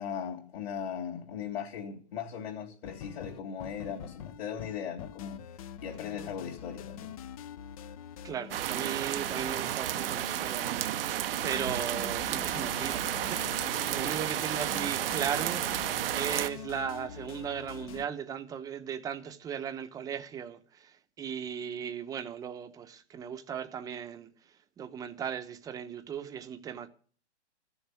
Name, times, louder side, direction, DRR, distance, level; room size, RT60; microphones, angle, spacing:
voice 1, 0.0-7.1, left 7 dB, 60° left, 3.2 m, -38 dB
sound 1, 2.8-18.1, left 9 dB, 30° left, 0.6 m, -45 dB
voice 2, 8.2-11.0 11.4-26.9, right 8 dB, 10° right, 0.9 m, -37 dB
sound 2, 8.5-16.5, right 12 dB, 55° right, 0.8 m, -32 dB
14.0 x 7.1 x 9.5 m
hypercardioid pair, 150°, 35 cm